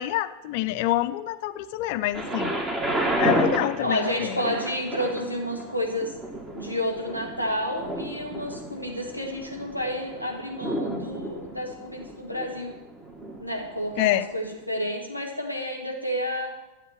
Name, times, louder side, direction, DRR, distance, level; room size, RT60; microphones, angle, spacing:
voice 1, 0.0-2.5 3.2-4.5 14.0-14.3, left 14 dB, 45° left, 11 dB, 0.5 m, -26 dB
Thunder, 2.1-14.0 14.7-14.8, right 1 dB, 20° right, 1.7 m, -32 dB
voice 2, 3.8-6.1 6.5-12.7 13.4-16.5, equal, 90° right, 0 dB, 2.1 m, -30 dB
12.5 x 7.3 x 6.0 m, 1.0 s
figure-of-eight pair, 90°, 0 cm